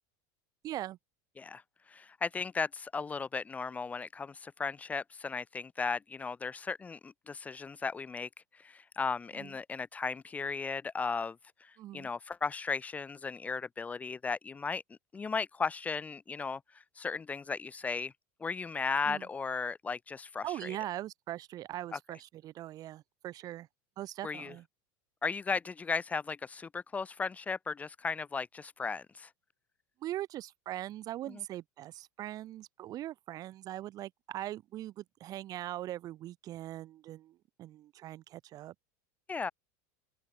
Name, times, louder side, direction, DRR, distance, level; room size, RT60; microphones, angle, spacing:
voice 1, 0.6-1.0 9.3-9.6 11.8-12.1 19.1-19.3 20.4-23.7 24.0-24.6 30.0-38.7, right 14 dB, 40° right, 1.9 m, -41 dB
voice 2, 1.4-18.1 18.4-20.8 21.9-22.0 24.2-24.5 25.2-29.3 31.3-31.4 39.3-39.5, left 5 dB, 15° left, 0.6 m, -36 dB
open air
supercardioid pair, 135°, 10 cm